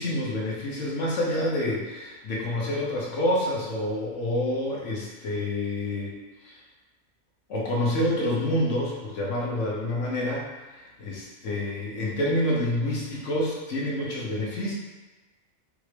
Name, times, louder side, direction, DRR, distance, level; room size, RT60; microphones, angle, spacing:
voice 1, 0.0-6.1 6.4-6.6 7.5-14.7, left 1 dB, 65° left, -3 dB, 1.2 m, -28 dB
4.9 x 2.8 x 3.2 m, 1.2 s
omnidirectional pair, 1.4 m